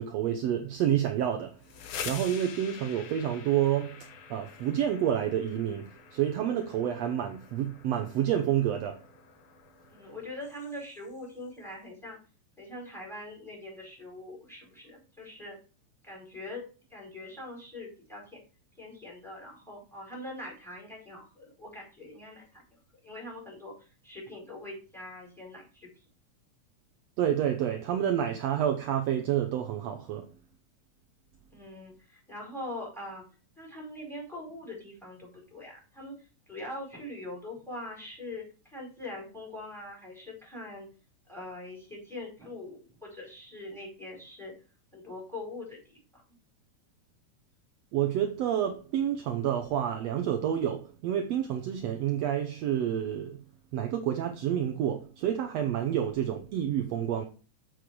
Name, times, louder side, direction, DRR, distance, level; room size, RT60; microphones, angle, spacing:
voice 1, 0.0-1.6 2.0-9.0 27.2-30.3 47.9-53.4 53.7-57.3, right 10 dB, 70° right, 1.8 m, -29 dB
sound 1, 1.5-11.2, left 8 dB, 60° left, 1.6 m, -46 dB
voice 2, 9.9-12.2 12.6-15.6 16.0-18.4 18.8-22.6 23.0-25.9 31.5-33.2 33.6-40.9 41.3-44.5 44.9-46.2, left 1 dB, ahead, 4.7 m, -43 dB
7.8 x 6.7 x 4.6 m
omnidirectional pair, 3.3 m